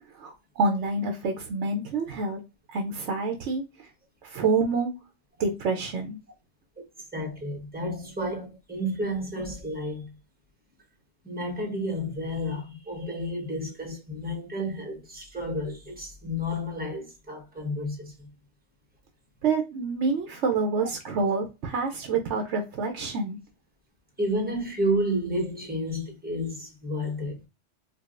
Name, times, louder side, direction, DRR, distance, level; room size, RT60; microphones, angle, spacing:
voice 1, 0.1-2.4 2.7-3.9 4.2-4.9 5.4-6.2 19.4-23.4, right 4 dB, 80° right, 1.0 m, -27 dB
voice 2, 7.1-10.1 11.2-18.3 24.2-27.4, equal, 10° right, 0.8 m, -31 dB
4.6 x 2.4 x 2.4 m
omnidirectional pair, 1.2 m